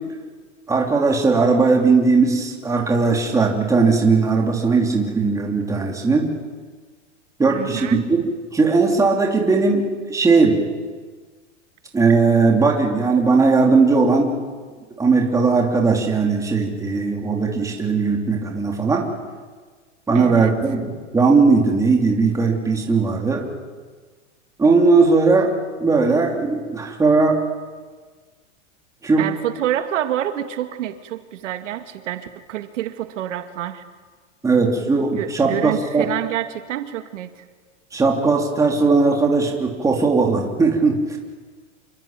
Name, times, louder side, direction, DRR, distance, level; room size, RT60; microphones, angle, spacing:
voice 1, 0.7-6.3 7.4-8.2 8.5-10.6 11.9-14.3 15.0-19.1 20.1-20.8 21.1-23.4 24.6-25.5 25.8-27.4 29.0-29.2 34.4-36.1 37.9-41.2, right 4 dB, 10° right, 1 dB, 3.1 m, -18 dB
voice 2, 7.5-8.1 20.1-20.6 29.2-33.8 35.1-37.4, right 12 dB, 70° right, 8 dB, 2.1 m, -27 dB
27.5 x 23.0 x 9.0 m, 1.5 s
supercardioid pair, 160°, 38 cm